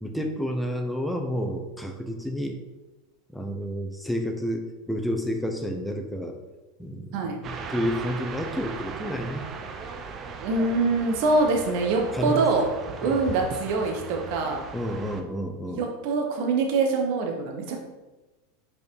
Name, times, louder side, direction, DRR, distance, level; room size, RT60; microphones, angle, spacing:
voice 1, 0.0-2.6 3.3-6.4 6.8-9.5 12.1-12.5 13.0-13.2 14.7-15.8, equal, ahead, 3 dB, 0.9 m, -30 dB
sound 1, 7.4-15.2, right 5 dB, 35° right, 0.7 m, -38 dB
voice 2, 10.4-12.6 13.0-14.7 15.7-17.8, right 3 dB, 60° right, 2 dB, 1.1 m, -24 dB
5.2 x 4.8 x 4.7 m, 1.1 s
hypercardioid pair, 90°, 0 cm